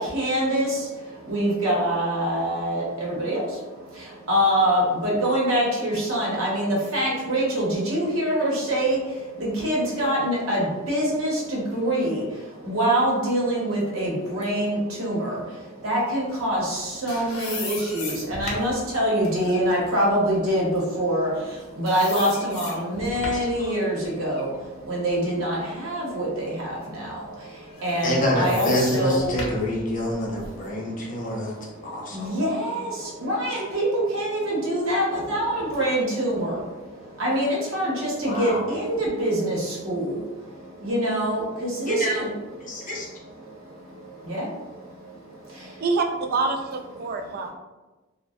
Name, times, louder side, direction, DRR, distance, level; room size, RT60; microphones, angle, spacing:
voice 1, 0.0-29.3 30.5-42.3 42.6-45.8, right 1 dB, 80° right, -4 dB, 0.8 m, -25 dB
sound 1, 16.8-21.5 21.9-23.6 24.0-26.0 26.5-26.6 27.6-30.7, left 3 dB, 85° left, 0.6 m, -38 dB
voice 2, 28.0-31.5 31.8-32.4 38.2-38.7 41.9-42.2 42.6-43.1, left 1 dB, 40° left, -3 dB, 0.6 m, -27 dB
voice 3, 45.8-47.5, right 3 dB, 50° right, 4 dB, 0.3 m, -26 dB
2.3 x 2.0 x 2.6 m, 1.1 s
head